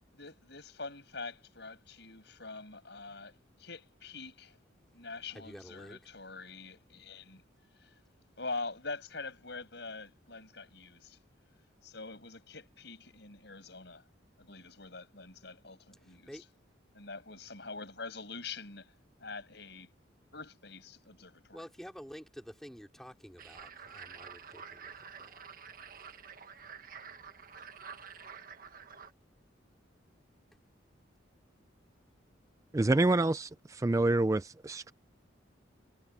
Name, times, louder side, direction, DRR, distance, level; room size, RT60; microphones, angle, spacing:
voice 1, 0.1-4.6 4.9-7.4 7.8-8.0 8.4-11.2 11.8-14.0 14.4-16.3 16.9-18.9 19.2-19.9 20.3-21.7, left 3 dB, 60° left, 7.7 m, -44 dB
voice 2, 5.3-6.0 16.0-16.4 21.5-24.9 25.2-25.4, equal, ahead, 4.7 m, -49 dB
sound 1, 23.4-29.1, right 6 dB, 45° right, 1.5 m, -49 dB
voice 3, 32.7-34.9, right 2 dB, 15° right, 0.3 m, -27 dB
head